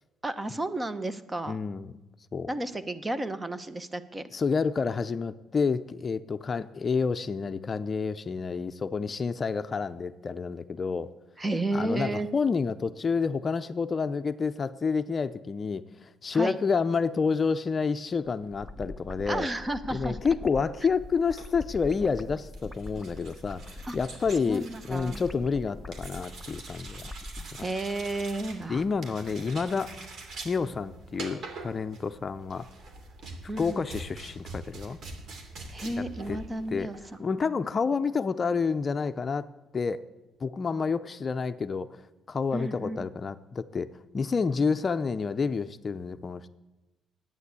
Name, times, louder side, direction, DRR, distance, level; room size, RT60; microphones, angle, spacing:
voice 1, 0.2-1.6 2.5-4.2 11.4-12.3 16.3-16.6 19.3-20.2 23.9-24.0 24.5-25.2 27.6-28.8 33.5-33.9 35.7-37.0 42.5-43.0, right 2 dB, 20° right, 12 dB, 1.0 m, -32 dB
voice 2, 1.5-1.9 2.3-2.5 4.3-11.1 11.7-19.5 19.9-27.1 27.6-27.7 28.7-29.9 30.4-32.6 33.6-35.0 36.0-36.4 36.7-36.9 37.2-39.4 39.7-40.0 40.4-41.9 42.3-43.9 44.1-46.5, left 5 dB, 40° left, 11 dB, 0.5 m, -29 dB
sound 1, 18.5-27.5, left 2 dB, 5° left, 0.9 m, -42 dB
sound 2, 21.2-37.2, right 3 dB, 65° right, 2.6 m, -44 dB
11.0 x 9.2 x 8.2 m, 1.0 s
cardioid pair, 90°, 0 cm